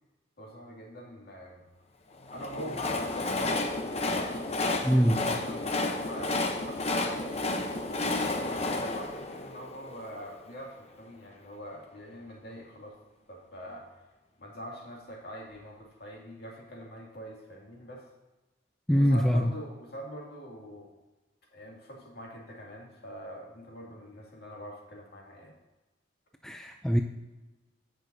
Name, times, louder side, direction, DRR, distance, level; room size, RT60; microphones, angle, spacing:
voice 1, 0.4-1.6 2.3-4.5 4.9-7.4 7.9-13.0 13.3-14.0 14.4-18.0 19.0-20.9 21.5-25.6, equal, 55° left, -2 dB, 2.5 m, -44 dB
Train, 2.2-10.4, left 2 dB, 35° left, 0.8 m, -31 dB
voice 2, 4.8-5.3 18.9-19.5 26.4-27.0, equal, 5° left, 4 dB, 0.4 m, -23 dB
17.5 x 6.1 x 2.7 m, 1.1 s
head